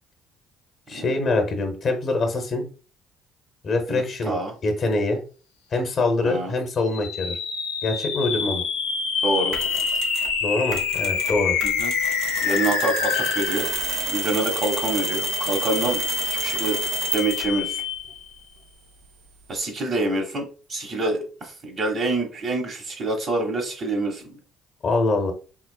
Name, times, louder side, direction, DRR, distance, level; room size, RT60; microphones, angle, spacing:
voice 1, 0.9-2.6 3.6-4.4 4.6-5.2 5.7-7.4 7.8-8.6 10.4-11.6 24.8-25.3, left 2 dB, 50° left, 5 dB, 0.9 m, -24 dB
voice 2, 3.9-4.5 6.2-6.5 9.2-9.6 11.6-11.9 12.4-13.7 14.1-16.8 17.1-17.8 19.5-24.4, right 2 dB, 50° right, 1 dB, 1.4 m, -26 dB
sound 1, 6.8-18.3, left 7 dB, 85° left, 0.5 m, -27 dB
Mechanisms, 9.5-10.3 10.7-17.6, right 6 dB, 65° right, 1.0 m, -30 dB
4.9 x 2.0 x 2.3 m, 0.36 s
hypercardioid pair, 60°, 0 cm